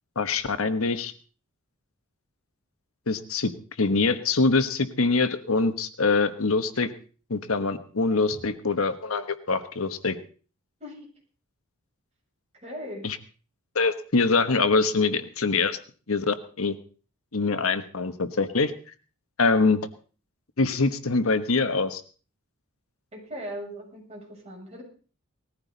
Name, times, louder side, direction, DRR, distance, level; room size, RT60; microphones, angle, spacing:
voice 1, 0.1-1.1 3.1-3.5 3.8-6.9 7.3-10.2 13.0-13.2 13.7-15.8 16.1-16.8 17.3-18.7 19.4-19.8 20.6-22.0, left 3 dB, 85° left, 10 dB, 1.2 m, -24 dB
voice 2, 12.5-13.1 23.1-24.8, equal, 30° right, -2 dB, 7.6 m, -39 dB
19.5 x 14.5 x 4.1 m, 0.39 s
head